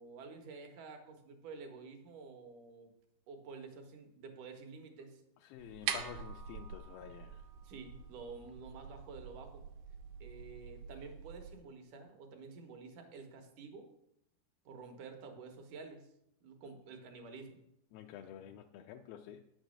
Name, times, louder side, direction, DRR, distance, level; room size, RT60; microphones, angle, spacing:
voice 1, 0.0-2.9 3.3-5.2 7.6-9.7 10.2-13.9 14.7-16.1 16.4-17.6, right 4 dB, 65° right, 5 dB, 2.4 m, -50 dB
voice 2, 5.4-7.4 17.9-19.4, left 10 dB, 80° left, 4 dB, 2.2 m, -49 dB
sound 1, 5.6-11.6, right 8 dB, 90° right, 2.6 m, -45 dB
9.2 x 6.2 x 6.4 m, 0.81 s
omnidirectional pair, 4.4 m